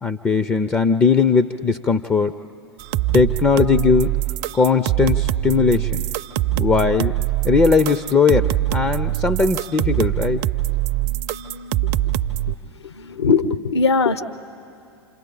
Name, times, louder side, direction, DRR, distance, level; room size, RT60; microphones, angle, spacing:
voice 1, 0.0-2.3 3.1-4.1 4.5-6.0 6.6-7.2 7.4-10.4, left 5 dB, 15° left, 9 dB, 0.4 m, -18 dB
sound 1, 2.8-12.5, right 14 dB, 40° right, 0.5 m, -23 dB
voice 2, 10.9-11.9 12.5-12.6 12.8-14.2, left 4 dB, 70° left, 10 dB, 0.9 m, -22 dB
28.0 x 26.5 x 3.8 m, 2.6 s
figure-of-eight pair, 95°, 14 cm